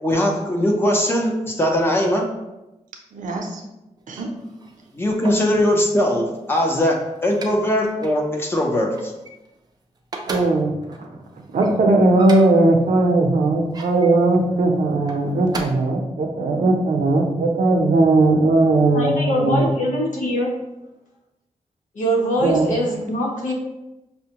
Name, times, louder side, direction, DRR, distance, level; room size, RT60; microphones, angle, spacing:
voice 1, 0.0-2.3 4.9-9.1, left 1 dB, 20° left, 0 dB, 0.6 m, -20 dB
voice 2, 3.1-3.6 4.1-4.3 10.2-19.7 22.4-22.7, right 2 dB, 80° right, 2 dB, 0.6 m, -18 dB
sound 1, 4.0-5.6 6.2-7.7 8.0-8.2 8.6-9.7 10.0-12.7 13.4-14.1 14.9-15.6, right 3 dB, 30° right, 0.4 m, -37 dB
voice 3, 18.9-20.5 21.9-23.5, equal, 90° left, -2 dB, 0.9 m, -22 dB
5.5 x 2.1 x 2.9 m, 0.96 s
wide cardioid pair, 180°, 13 cm